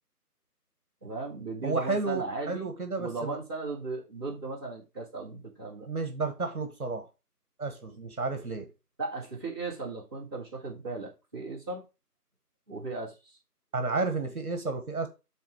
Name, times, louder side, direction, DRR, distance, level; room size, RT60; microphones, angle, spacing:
voice 1, 1.0-2.7 3.0-5.9 9.0-11.8 12.7-13.2, right 3 dB, 15° right, 2.0 m, -36 dB
voice 2, 1.6-3.4 5.9-7.1 7.6-8.7 13.7-15.1, right 3 dB, 65° right, 1.6 m, -31 dB
7.9 x 3.7 x 4.8 m
figure-of-eight pair, 175°, 47 cm